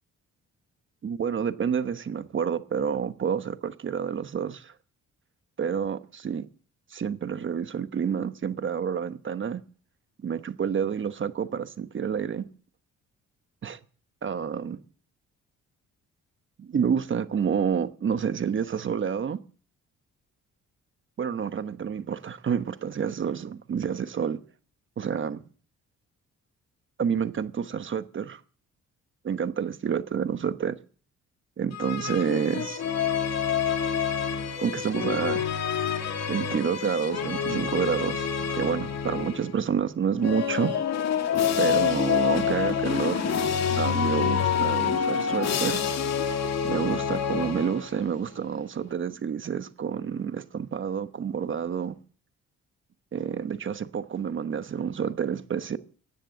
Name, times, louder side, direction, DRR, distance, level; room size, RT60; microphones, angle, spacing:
voice 1, 1.0-4.7 5.6-6.5 6.9-9.6 10.2-12.5 13.6-13.8 14.2-14.8 16.6-19.4 21.2-24.4 25.0-25.4 27.0-28.4 29.2-30.8 31.6-32.8 34.6-35.4 36.3-40.7 41.6-43.3 43.8-45.8 46.6-52.0 53.1-55.8, right 7 dB, 40° right, 1.1 m, -29 dB
sound 1, 31.7-39.6 40.2-48.1, left 8 dB, 60° left, 2.4 m, -27 dB
16.0 x 9.9 x 7.6 m
cardioid pair, 90°, 30 cm